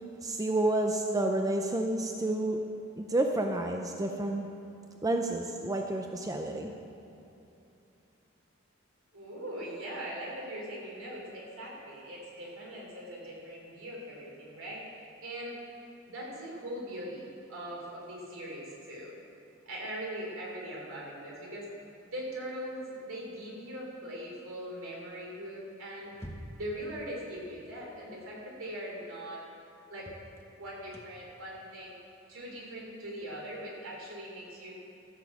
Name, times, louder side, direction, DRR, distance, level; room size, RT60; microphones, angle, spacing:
voice 1, 0.2-2.6 3.0-4.5 5.0-6.7, right 1 dB, 15° right, 3 dB, 0.5 m, -30 dB
voice 2, 9.1-15.6 16.1-19.1 19.7-21.7 22.0-26.1 26.6-29.4 29.9-30.1 30.5-32.0 32.3-34.8, equal, 70° right, -3 dB, 3.6 m, -41 dB
sound 1, 26.1-26.8 28.6-28.7 29.1-29.2 30.0-33.5, equal, 10° left, 0.9 m, -49 dB
14.0 x 7.1 x 7.2 m, 2.9 s
head